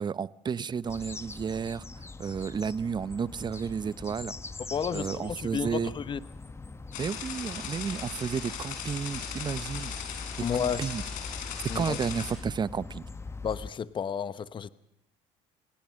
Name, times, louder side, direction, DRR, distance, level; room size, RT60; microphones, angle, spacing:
voice 1, 0.0-1.8 2.2-4.3 4.9-5.9 7.0-9.9 10.8-11.0 11.7-13.0, right 6 dB, 30° right, 0.8 m, -32 dB
sound 1, 0.8-13.7, left 3 dB, 20° left, 1.2 m, -42 dB
voice 2, 4.7-6.2 10.4-10.8 11.7-12.0 13.4-14.7, left 7 dB, 35° left, 0.9 m, -32 dB
sound 2, 6.9-12.3, left 8 dB, 70° left, 4.8 m, -38 dB
27.5 x 18.5 x 6.4 m
supercardioid pair, 85°, 14 cm